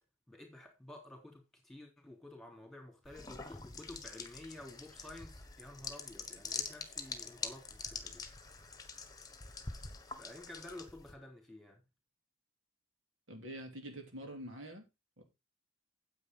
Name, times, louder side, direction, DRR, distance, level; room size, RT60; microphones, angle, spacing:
voice 1, 0.3-8.2 10.2-11.8, left 1 dB, ahead, 3.4 m, -51 dB
sound 1, 3.0-11.1, left 4 dB, 20° left, 1.4 m, -45 dB
voice 2, 13.3-14.8 15.2-15.3, equal, 65° right, 2.8 m, -46 dB
9.7 x 8.2 x 3.9 m
head